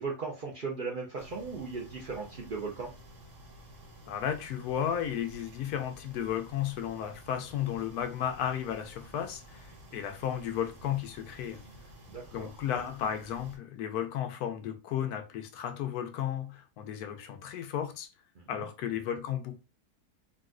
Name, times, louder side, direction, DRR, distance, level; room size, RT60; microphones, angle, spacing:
voice 1, 0.0-2.9 12.1-12.5 18.4-18.7, right 4 dB, 75° right, 0.4 m, -37 dB
sound 1, 1.2-13.6, equal, 55° right, 1.2 m, -52 dB
voice 2, 4.1-11.6 12.3-18.1 18.5-19.6, left 9 dB, 75° left, 1.1 m, -34 dB
3.9 x 2.3 x 2.4 m
omnidirectional pair, 1.7 m